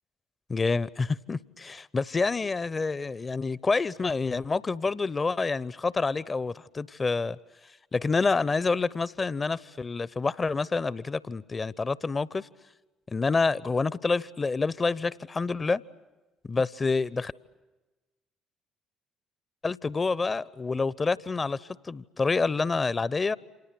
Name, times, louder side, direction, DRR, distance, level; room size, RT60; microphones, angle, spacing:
voice 1, 0.5-7.4 7.9-12.5 13.1-15.8 16.4-17.3 19.6-23.4, left 4 dB, 30° left, 0.9 m, -28 dB
28.0 x 27.5 x 7.7 m
figure-of-eight pair, 50°, 0 cm